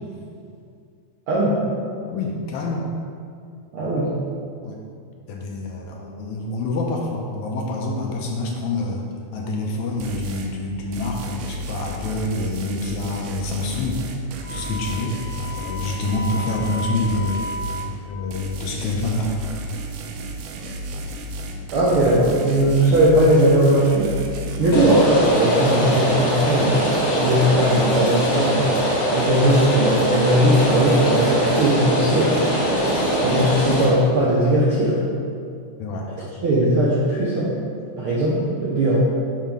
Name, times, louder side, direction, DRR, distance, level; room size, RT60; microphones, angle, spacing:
voice 1, 1.3-1.6 3.7-4.1 21.7-24.1 24.6-26.9 27.2-32.7 33.2-35.0 36.4-37.5 38.0-39.0, right 1 dB, 70° right, -7 dB, 1.3 m, -19 dB
voice 2, 2.1-2.9 4.6-4.8 5.3-9.0 9.3-14.0 14.5-15.2 15.5-17.5 18.1-19.3 24.7-24.9 35.8-36.1, left 2 dB, 80° left, 0 dB, 1.8 m, -27 dB
sound 1, 10.0-10.5 10.9-17.9 18.3-24.8, right 1 dB, 85° right, 1.5 m, -33 dB
Wind instrument woodwind instrument, 14.4-18.0, left 1 dB, 35° right, 1.1 m, -33 dB
Rain, 24.7-33.9, equal, 55° left, 2.2 m, -22 dB
7.4 x 5.5 x 3.6 m, 2.3 s
omnidirectional pair, 3.6 m